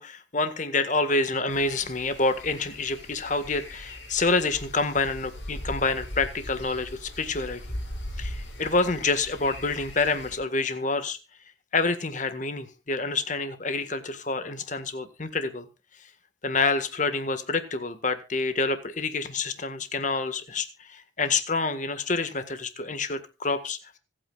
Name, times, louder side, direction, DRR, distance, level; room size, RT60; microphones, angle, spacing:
voice 1, 0.0-7.8 8.2-11.2 11.7-15.7 16.4-23.8, left 3 dB, 40° left, 10 dB, 1.8 m, -27 dB
sound 1, 1.5-10.4, left 1 dB, 65° left, 6.1 m, -40 dB
25.5 x 9.1 x 2.4 m, 0.29 s
head